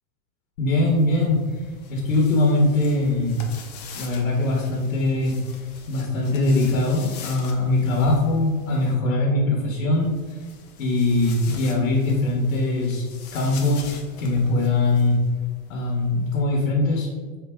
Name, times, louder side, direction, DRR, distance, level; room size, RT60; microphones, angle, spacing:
voice 1, 0.6-3.4 3.9-5.4 5.9-10.1 10.8-13.1 13.3-15.2 15.7-17.1, left 2 dB, 70° left, -1 dB, 1.2 m, -22 dB
sound 1, 0.8-8.9 9.9-16.4, left 5 dB, 30° left, 0.4 m, -44 dB
3.9 x 3.5 x 3.6 m, 1.4 s
supercardioid pair, 155°, 42 cm